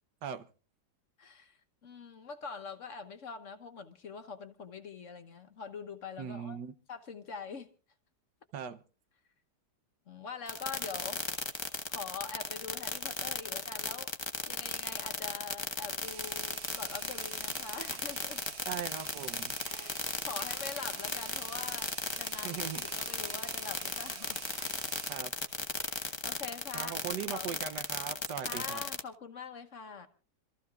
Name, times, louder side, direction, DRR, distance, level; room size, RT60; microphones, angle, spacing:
voice 1, 1.2-6.6 6.9-7.7 10.1-11.2 11.9-14.1 14.5-18.4 19.7-24.4 25.8-26.9 27.3-27.6 28.5-30.1, left 5 dB, 50° left, 1.3 m, -44 dB
voice 2, 6.2-6.7 8.5-8.8 18.7-19.5 22.4-22.9 25.1-25.3 26.7-28.8, right 8 dB, 80° right, 1.5 m, -39 dB
sound 1, 10.5-29.0, left 3 dB, 20° left, 0.9 m, -35 dB
sound 2, 16.0-25.2, right 7 dB, 50° right, 0.9 m, -47 dB
27.0 x 14.0 x 2.4 m
omnidirectional pair, 1.8 m